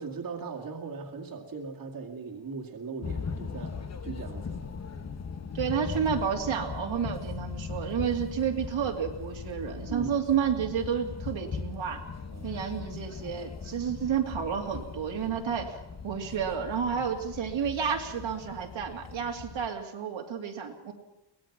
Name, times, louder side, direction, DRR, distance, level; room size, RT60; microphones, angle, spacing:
voice 1, 0.0-4.7 9.9-10.1 12.3-12.6 16.9-17.1, right 5 dB, 45° right, 0 dB, 2.2 m, -39 dB
sound 1, 3.0-19.7, left 5 dB, 35° left, 1.0 m, -39 dB
voice 2, 5.5-12.0 12.4-15.8 16.0-20.9, right 7 dB, 75° right, 2 dB, 2.6 m, -30 dB
23.5 x 18.5 x 6.0 m, 0.95 s
wide cardioid pair, 175°, 46 cm